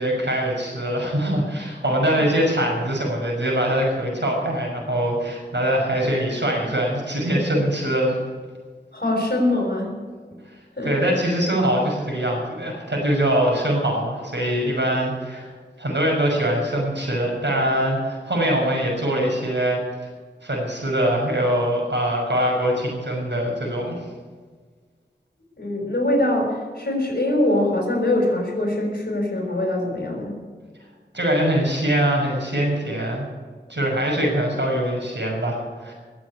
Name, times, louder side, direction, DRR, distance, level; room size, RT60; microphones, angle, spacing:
voice 1, 0.0-8.2 10.8-15.5 15.8-19.8 20.4-23.9 31.1-33.2 33.7-35.9, equal, 75° right, -1 dB, 6.2 m, -23 dB
voice 2, 8.9-10.0 10.8-10.9 25.6-30.4, left 1 dB, 55° left, -1 dB, 6.1 m, -23 dB
21.0 x 7.9 x 8.4 m, 1.5 s
wide cardioid pair, 50°, 18 cm